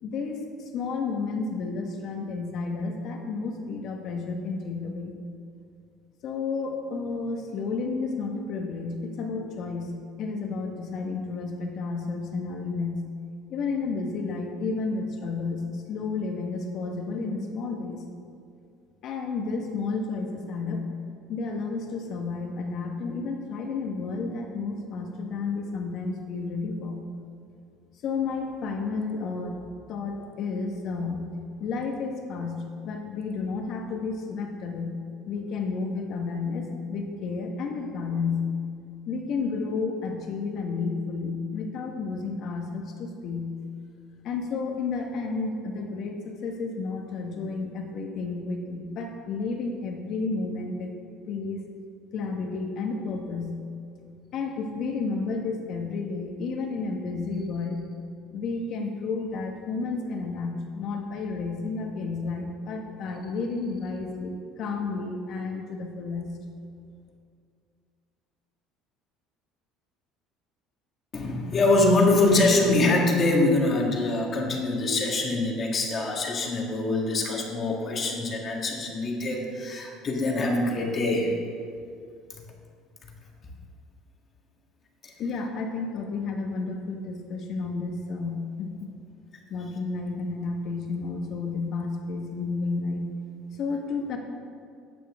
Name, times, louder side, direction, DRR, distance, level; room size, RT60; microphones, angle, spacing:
voice 1, 0.0-5.1 6.2-9.9 10.2-13.0 13.5-18.1 19.0-20.8 21.3-27.0 28.0-29.6 29.9-31.2 31.6-34.9 35.3-38.4 39.1-43.5 44.2-50.9 51.3-51.6 52.1-53.5 54.3-57.8 58.3-66.3 85.2-88.9 89.5-93.1 93.6-94.2, left 4 dB, 50° left, 2 dB, 1.4 m, -31 dB
voice 2, 71.1-81.3, left 2 dB, 30° left, 0 dB, 1.7 m, -24 dB
14.5 x 8.6 x 3.6 m, 2.3 s
cardioid pair, 145°, 0 cm